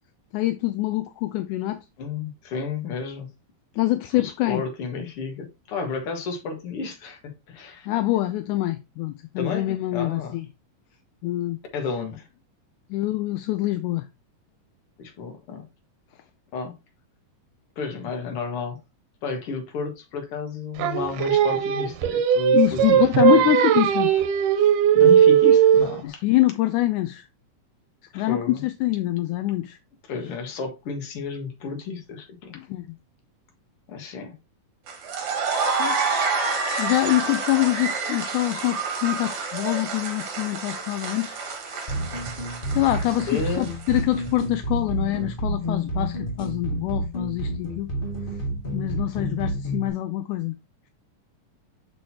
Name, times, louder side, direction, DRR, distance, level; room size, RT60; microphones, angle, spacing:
voice 1, 0.3-1.8 3.8-4.6 7.9-10.5 11.2-11.6 12.9-14.1 22.5-24.1 24.6-24.7 26.0-27.3 28.2-29.8 32.6-33.0 35.8-36.0 36.8-41.4 41.7-41.8 42.7-47.9 48.7-50.6, left 16 dB, 80° left, 1.9 m, -25 dB
voice 2, 2.0-3.3 4.1-7.9 9.4-10.4 11.7-12.3 15.0-15.7 16.5-16.7 17.8-18.8 19.2-23.5 24.9-26.2 28.1-28.6 30.1-32.6 33.9-34.4 43.3-43.8, left 4 dB, 50° left, 2.1 m, -32 dB
Singing, 20.8-26.0, right 9 dB, 85° right, 2.3 m, -18 dB
sound 1, 34.9-44.2, right 4 dB, 60° right, 2.5 m, -29 dB
sound 2, 41.9-49.9, right 1 dB, 25° left, 1.1 m, -30 dB
6.6 x 6.1 x 2.8 m
omnidirectional pair, 3.7 m